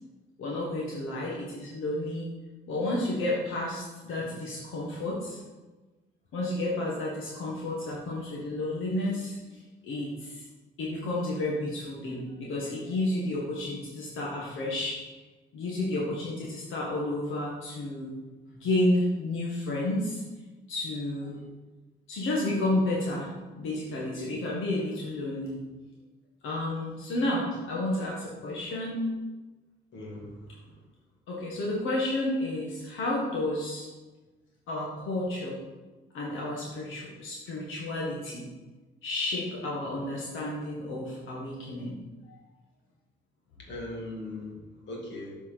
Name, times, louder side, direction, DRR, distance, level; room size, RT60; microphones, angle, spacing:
voice 1, 0.4-2.3 2.7-5.4 6.3-10.5 10.8-15.0 15.5-18.1 18.5-20.2 20.7-21.4 22.1-23.3 23.6-25.6 26.4-29.0 31.3-33.9 34.7-35.6 36.1-38.5 39.0-42.0, left 1 dB, 85° left, -4 dB, 1.6 m, -31 dB
voice 2, 29.9-30.8 43.6-44.5 44.9-45.3, left 1 dB, 65° left, -2 dB, 2.3 m, -39 dB
7.6 x 4.6 x 5.8 m, 1.2 s
cardioid pair, 90°, 20 cm